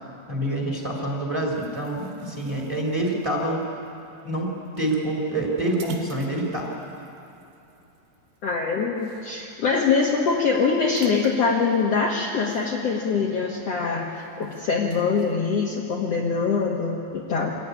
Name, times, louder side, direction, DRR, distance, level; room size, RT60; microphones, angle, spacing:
voice 1, 0.3-3.6 4.2-4.5 4.8-6.7, right 1 dB, 10° right, 0 dB, 3.6 m, -26 dB
sound 1, 1.5-9.5 9.9-10.1 10.4-13.3 13.7-15.3, right 3 dB, 75° right, 3.3 m, -45 dB
voice 2, 8.4-17.5, left 5 dB, 55° left, -2 dB, 2.2 m, -24 dB
24.5 x 15.0 x 9.6 m, 2.8 s
omnidirectional pair, 4.1 m